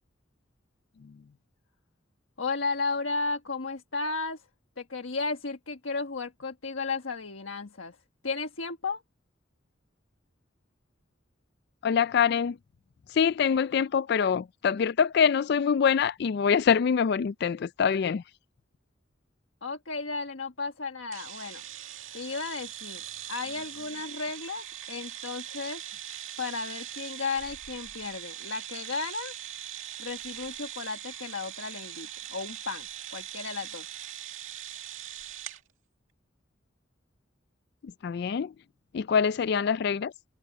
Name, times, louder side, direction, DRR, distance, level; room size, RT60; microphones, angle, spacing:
voice 1, 2.4-4.4 4.8-8.0 8.2-9.0 19.6-21.6 22.1-23.0 23.3-25.8 26.4-29.3 30.0-33.9, left 4 dB, 80° left, 1.4 m, -34 dB
voice 2, 11.8-12.6 13.1-18.2 38.0-38.5 38.9-40.1, left 7 dB, 55° left, 0.3 m, -24 dB
sound 1, 21.1-35.6, right 10 dB, 90° right, 2.3 m, -41 dB
head